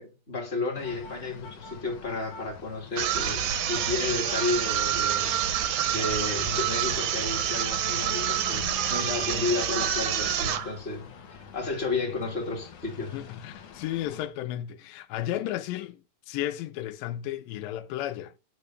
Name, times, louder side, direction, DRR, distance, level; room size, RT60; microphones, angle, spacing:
voice 1, 0.0-5.4 5.9-13.1, left 3 dB, 20° left, 2.0 m, -32 dB
sound 1, 0.7-14.3, left 6 dB, 60° left, 1.8 m, -45 dB
sound 2, 3.0-10.7, right 9 dB, 70° right, 2.0 m, -27 dB
voice 2, 13.0-18.3, left 13 dB, 80° left, 2.1 m, -34 dB
10.5 x 3.8 x 6.8 m
omnidirectional pair, 4.6 m